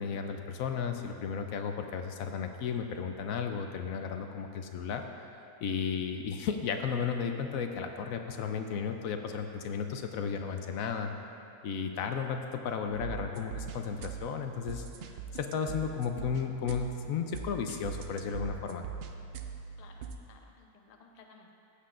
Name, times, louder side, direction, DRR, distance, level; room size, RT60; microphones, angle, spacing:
voice 1, 0.0-5.0 5.6-11.1 11.6-14.8 15.3-18.8, left 6 dB, 70° left, 5 dB, 0.9 m, -34 dB
sound 1, 12.9-20.2, right 7 dB, 75° right, 0.5 m, -42 dB
voice 2, 19.8-21.5, left 4 dB, 50° left, 2 dB, 0.4 m, -57 dB
15.0 x 7.5 x 2.5 m, 2.6 s
omnidirectional pair, 1.6 m